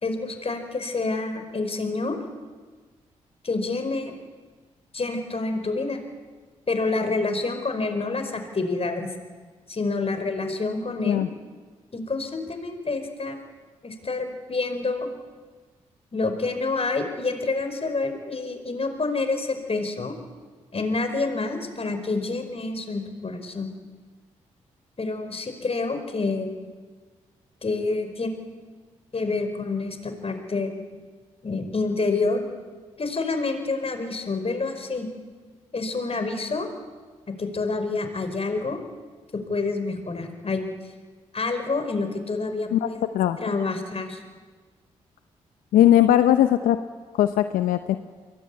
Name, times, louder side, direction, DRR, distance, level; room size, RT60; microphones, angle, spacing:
voice 1, 0.0-2.2 3.4-4.2 4.9-6.0 6.7-9.1 9.7-11.2 11.9-13.4 13.8-15.1 16.1-20.2 20.7-23.7 25.0-26.5 27.6-28.3 29.1-30.7 31.4-32.4 33.0-35.1 35.7-36.7 37.4-38.8 39.3-40.7 41.3-43.0 43.4-44.2, left 3 dB, 45° left, 6 dB, 5.1 m, -28 dB
voice 2, 45.7-46.8 47.1-48.0, left 12 dB, 80° left, 10 dB, 0.8 m, -19 dB
23.0 x 19.0 x 9.8 m, 1.4 s
hypercardioid pair, 40°, 14 cm